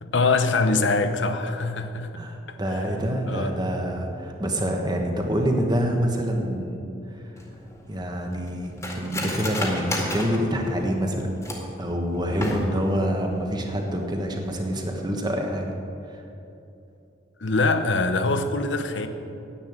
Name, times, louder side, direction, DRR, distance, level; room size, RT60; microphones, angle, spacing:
voice 1, 0.0-2.2 2.7-2.8 3.3-3.5 17.4-19.1, left 3 dB, 75° left, 8 dB, 0.9 m, -23 dB
voice 2, 2.1-7.2 7.9-11.4 11.8-15.7 16.1-16.2, equal, 25° right, 2 dB, 1.5 m, -26 dB
Cutlery silverware, 7.4-11.8 12.3-13.0 13.3-13.4 13.7-14.1 14.4-14.6, left 1 dB, 15° left, 2.0 m, -32 dB
10.0 x 8.6 x 8.9 m, 2.8 s
head